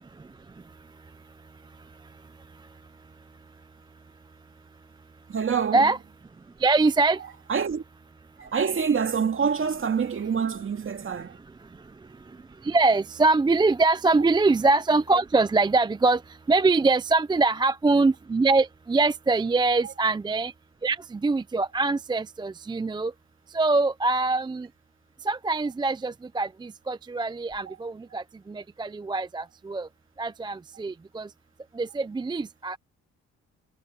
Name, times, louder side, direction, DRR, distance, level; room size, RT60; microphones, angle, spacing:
voice 1, 5.3-5.9 7.2-7.8 8.4-11.4 19.8-19.9 27.7-27.8 28.1-28.2, right 6 dB, 45° right, 2.4 m, -27 dB
voice 2, 6.6-7.2 12.6-16.2 16.5-20.5 20.8-23.1 23.5-24.7 25.3-29.9 30.2-31.3 31.8-32.8, right 3 dB, 15° right, 0.5 m, -23 dB
cardioid pair, 90°, 30 cm